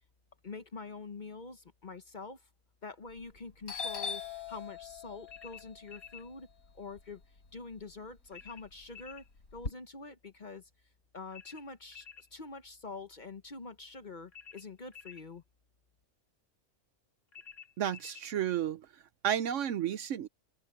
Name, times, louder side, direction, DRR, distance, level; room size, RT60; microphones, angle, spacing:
voice 1, 0.4-2.5 2.8-6.5 6.7-7.2 7.5-9.2 9.5-10.7 11.1-15.4, left 4 dB, 35° left, 1.0 m, -46 dB
Doorbell, 3.1-3.4 3.7-7.8 8.2-9.7, left 5 dB, 90° left, 4.3 m, -42 dB
sound 1, 5.3-6.3 8.3-9.3 11.3-12.3 14.3-15.3 17.3-18.3, left 8 dB, 55° left, 3.2 m, -51 dB
voice 2, 17.8-20.3, right 10 dB, 65° right, 0.9 m, -32 dB
open air
omnidirectional pair, 1.5 m